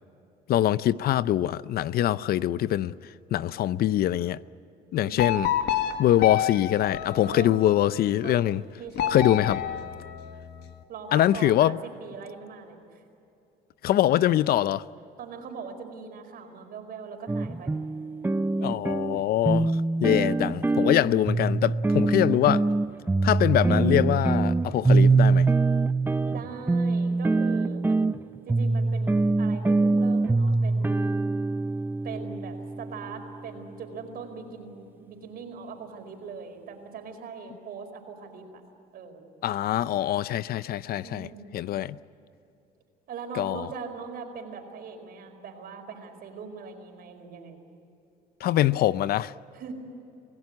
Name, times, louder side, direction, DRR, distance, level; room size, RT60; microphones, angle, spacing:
voice 1, 0.5-2.9 3.3-4.4 4.9-5.5 6.0-8.6 9.1-9.6 11.1-11.8 13.8-14.8 18.6-19.7 20.0-22.7 23.2-25.5 39.4-41.3 41.5-42.0 43.4-43.7 48.4-49.3, left 12 dB, 65° left, 0.6 m, -23 dB
voice 2, 5.0-5.3 7.2-7.5 8.2-9.9 10.9-13.0 15.2-17.8 26.2-31.1 32.0-38.5 38.9-39.2 41.0-41.6 43.1-47.6 49.5-49.7, right 5 dB, 65° right, 4.8 m, -41 dB
sound 1, 5.2-7.9 8.9-10.7, left 10 dB, 80° left, 1.7 m, -29 dB
sound 2, 17.3-33.5, right 3 dB, 10° right, 0.6 m, -24 dB
27.0 x 17.5 x 9.7 m
cardioid pair, 110°, 17 cm